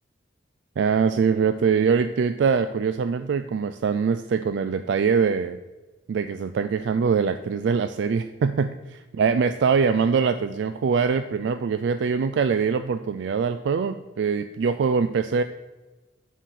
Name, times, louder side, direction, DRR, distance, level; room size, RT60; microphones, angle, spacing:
voice 1, 0.8-5.6 6.1-15.4, right 6 dB, 75° right, 10 dB, 0.3 m, -23 dB
7.7 x 4.2 x 6.3 m, 1.2 s
head